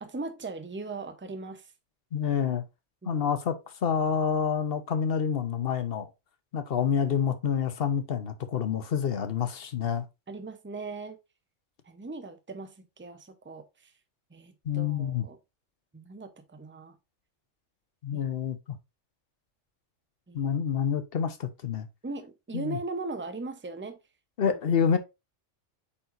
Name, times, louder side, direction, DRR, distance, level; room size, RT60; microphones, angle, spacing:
voice 1, 0.0-1.7 3.0-3.3 10.3-11.2 11.8-13.9 14.3-15.4 15.9-16.9 18.1-18.2 20.3-20.4 22.0-24.0 24.4-24.6, right 3 dB, 10° right, 0.7 m, -39 dB
voice 2, 2.1-2.6 3.0-6.1 6.5-10.0 14.6-15.3 18.0-18.6 20.3-21.9 22.5-22.8 24.4-25.0, left 7 dB, 55° left, 1.0 m, -28 dB
8.4 x 4.4 x 2.6 m
omnidirectional pair, 1.3 m